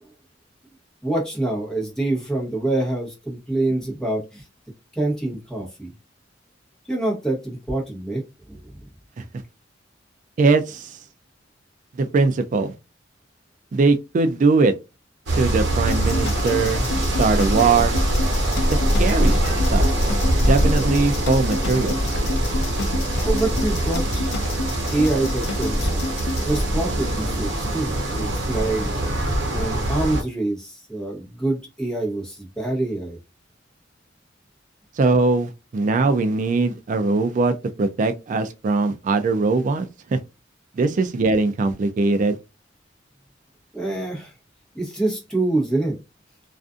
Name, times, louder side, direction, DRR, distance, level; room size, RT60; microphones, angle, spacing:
voice 1, 1.0-4.5 4.9-5.9 6.9-8.9 23.2-24.3 24.9-25.9 26.2-28.9 29.5-33.2 43.7-44.3 44.7-46.0, right 2 dB, 5° left, 1.0 m, -26 dB
voice 2, 10.4-11.0 12.0-12.7 13.7-14.7 15.3-16.9 17.2-18.0 19.0-19.4 19.7-19.8 20.4-22.0 35.0-40.2 40.8-42.4, right 3 dB, 40° right, 0.3 m, -21 dB
sound 1, 15.3-30.2, right 1 dB, 65° right, 0.9 m, -23 dB
sound 2, 15.9-26.6, left 3 dB, 60° left, 0.4 m, -31 dB
2.4 x 2.4 x 2.4 m
head